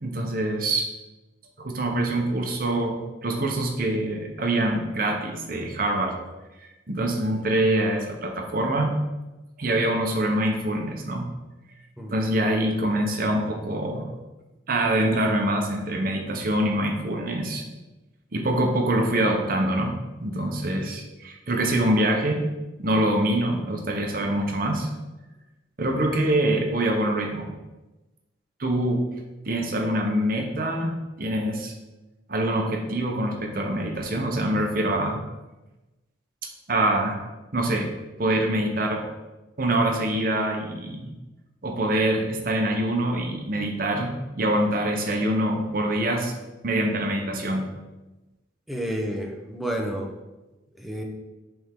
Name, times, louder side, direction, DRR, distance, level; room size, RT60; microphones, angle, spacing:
voice 1, 0.0-0.9 1.6-6.1 6.9-9.0 9.6-11.3 12.1-14.1 14.7-17.6 18.3-19.9 20.2-22.4 22.8-24.9 25.8-27.5 28.6-29.0 29.4-31.7 32.3-35.2 36.7-37.2 37.5-37.9 38.2-39.0 39.6-41.1 41.6-46.3 46.6-47.6, right 1 dB, 50° right, 2 dB, 0.9 m, -25 dB
voice 2, 48.7-50.1 50.8-51.0, equal, ahead, 0 dB, 0.7 m, -30 dB
7.4 x 3.6 x 3.7 m, 1.1 s
head